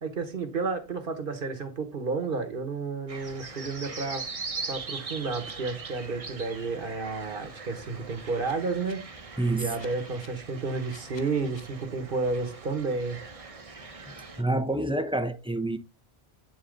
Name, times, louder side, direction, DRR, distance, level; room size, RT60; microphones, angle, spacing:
voice 1, 0.0-4.2 4.6-9.0 9.6-13.2, right 4 dB, 55° right, 1.4 m, -31 dB
sound 1, 3.1-14.4, right 4 dB, 35° right, 0.9 m, -41 dB
sound 2, 5.4-5.5 8.2-8.9 9.5-10.3 10.9-11.6, left 3 dB, 30° left, 0.9 m, -51 dB
voice 2, 9.4-9.8 14.1-15.8, right 2 dB, 5° right, 0.4 m, -28 dB
9.1 x 4.1 x 3.8 m
omnidirectional pair, 1.1 m